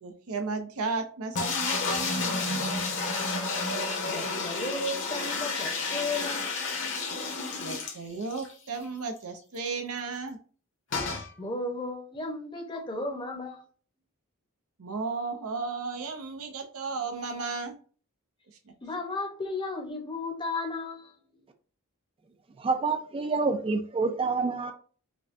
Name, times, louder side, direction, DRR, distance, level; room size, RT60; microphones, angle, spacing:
voice 1, 0.0-2.6 7.6-10.4 14.8-17.7, right 4 dB, 80° right, 0.6 m, -34 dB
sound 1, 1.3-8.5 8.8-8.9 9.2-9.3 10.9-11.3, left 3 dB, 60° left, 1.0 m, -31 dB
voice 2, 4.1-6.6 11.4-13.6 18.8-21.1, left 2 dB, 20° left, 0.8 m, -34 dB
voice 3, 22.6-24.7, right 4 dB, 25° right, 0.3 m, -27 dB
5.0 x 2.2 x 2.6 m
head